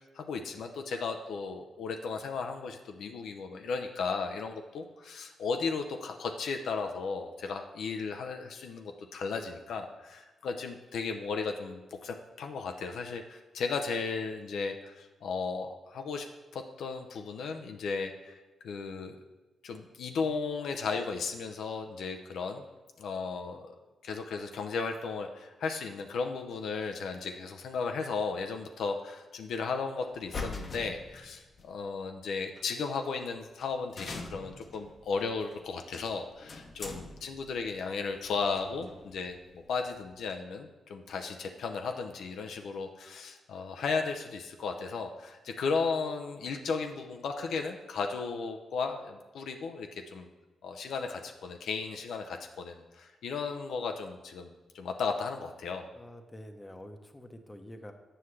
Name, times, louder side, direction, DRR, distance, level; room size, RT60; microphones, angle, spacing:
voice 1, 0.2-16.3 16.5-18.4 18.6-19.2 19.6-22.6 23.0-23.7 24.0-50.3 50.6-55.9, left 4 dB, 75° left, 4 dB, 0.5 m, -35 dB
sound 1, 30.1-31.7 32.6-32.7 33.2-33.3 33.5-33.7 34.0-40.3, left 3 dB, 45° left, 0.8 m, -44 dB
voice 2, 55.9-57.9, left 1 dB, 15° left, 6 dB, 0.8 m, -47 dB
7.7 x 5.6 x 3.2 m, 1.1 s
supercardioid pair, 55°, 0 cm